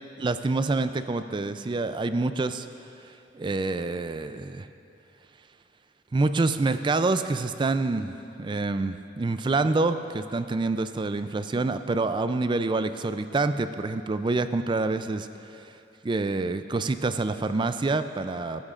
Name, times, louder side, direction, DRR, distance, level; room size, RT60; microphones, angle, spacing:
voice 1, 0.2-2.7 3.3-4.7 6.1-8.1 8.4-15.7 16.0-18.6, right 3 dB, 25° right, 10 dB, 0.4 m, -27 dB
19.0 x 11.5 x 2.5 m, 2.6 s
head